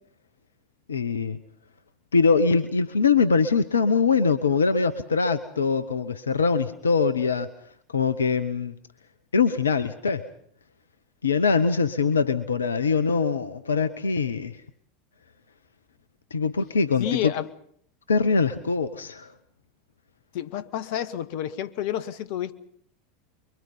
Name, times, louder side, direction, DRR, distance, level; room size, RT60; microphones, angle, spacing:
voice 1, 0.9-1.4 2.1-7.5 7.9-8.7 9.3-10.2 11.2-14.6 16.3-17.3 18.1-19.3, left 5 dB, 80° left, 12 dB, 0.8 m, -23 dB
voice 2, 17.0-17.5 20.3-22.6, left 11 dB, 55° left, 12 dB, 1.1 m, -30 dB
25.0 x 23.5 x 5.5 m, 0.63 s
figure-of-eight pair, 80°, 0 cm